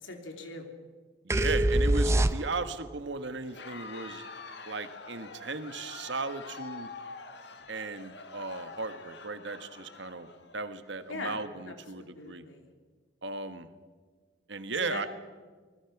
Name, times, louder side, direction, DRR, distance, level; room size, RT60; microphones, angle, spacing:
voice 1, 0.0-0.7 11.1-12.7 14.8-15.1, left 2 dB, 80° left, 4 dB, 3.3 m, -41 dB
voice 2, 1.2-4.2 4.6-6.9 7.7-10.3 10.5-12.5 13.2-13.7 14.5-15.1, right 3 dB, 65° right, 10 dB, 1.4 m, -36 dB
sound 1, 1.3-2.8, right 1 dB, 15° right, 0.5 m, -24 dB
Crowd, 3.4-10.9, left 4 dB, 60° left, 1.8 m, -46 dB
25.5 x 20.0 x 6.0 m, 1.5 s
head